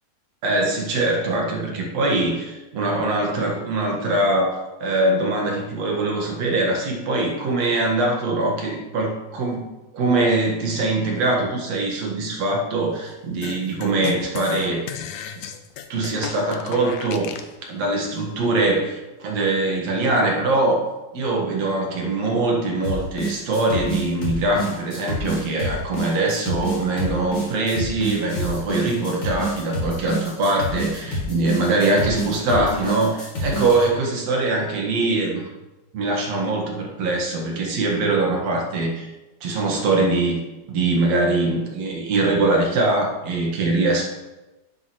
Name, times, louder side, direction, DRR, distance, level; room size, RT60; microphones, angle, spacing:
voice 1, 0.4-14.9 15.9-17.3 17.7-20.8 21.1-35.4 35.9-39.1 39.4-40.4 40.7-44.1, right 2 dB, 65° right, 0 dB, 2.7 m, -22 dB
sound 1, 13.4-17.5, left 9 dB, 85° left, 2.1 m, -34 dB
sound 2, 22.8-33.9, equal, 40° left, 3.2 m, -28 dB
11.5 x 9.3 x 3.1 m, 1.1 s
omnidirectional pair, 3.3 m